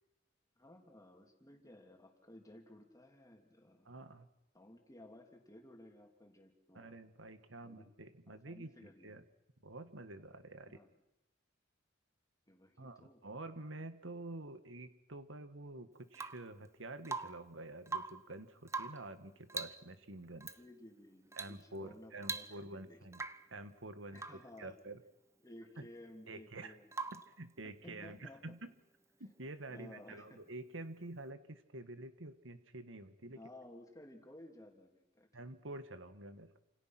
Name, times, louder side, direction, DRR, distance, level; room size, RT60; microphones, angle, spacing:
voice 1, 0.6-3.9 4.5-6.9 7.6-7.9 8.3-9.2 10.6-10.9 12.5-13.2 20.3-23.0 24.1-24.8 25.4-26.9 27.6-28.6 29.7-30.4 33.3-35.3, left 1 dB, 20° left, 3 dB, 3.1 m, -56 dB
voice 2, 3.8-4.3 6.7-9.2 9.6-10.8 12.8-20.5 21.3-23.2 23.5-24.2 24.6-25.0 25.8-25.9 26.3-26.8 27.1-28.7 29.2-33.4 35.3-36.6, right 2 dB, 85° right, 10 dB, 1.8 m, -48 dB
Rain / Water tap faucet / Drip, 16.1-16.5 17.0-17.5 17.8-18.3 18.7-19.1 19.5-19.9 20.4-20.6 21.3-21.6 21.9-22.0 22.2-22.8 23.1-23.5 24.2-24.5 26.9-27.4 29.3-29.4, right 4 dB, 15° right, 0.9 m, -42 dB
29.0 x 27.5 x 6.1 m, 0.91 s
head